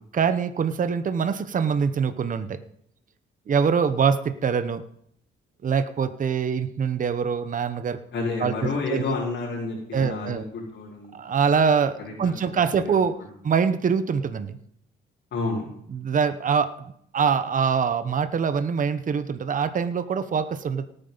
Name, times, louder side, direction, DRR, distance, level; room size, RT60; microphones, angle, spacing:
voice 1, 0.1-2.6 3.5-4.8 5.6-8.0 8.4-9.0 9.9-10.4 11.1-13.2 13.4-14.6 15.9-16.7 17.1-20.9, right 6 dB, 40° right, 11 dB, 1.0 m, -24 dB
voice 2, 8.1-11.2 12.0-12.6 12.8-13.0 15.3-15.7, left 3 dB, 65° left, -6 dB, 4.3 m, -30 dB
18.5 x 9.1 x 4.0 m, 0.71 s
cardioid pair, 90°, 20 cm